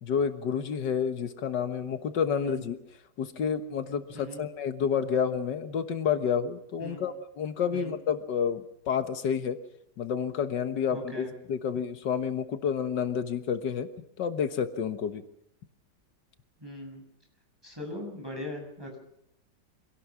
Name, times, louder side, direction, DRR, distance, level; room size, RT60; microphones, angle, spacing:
voice 1, 0.0-2.8 3.2-9.6 10.0-13.9 14.2-15.2, left 7 dB, 90° left, 9 dB, 2.0 m, -29 dB
voice 2, 10.9-11.3 16.6-17.0 17.6-19.0, left 1 dB, 15° right, 2 dB, 7.1 m, -39 dB
26.0 x 18.0 x 6.1 m, 0.75 s
omnidirectional pair, 1.8 m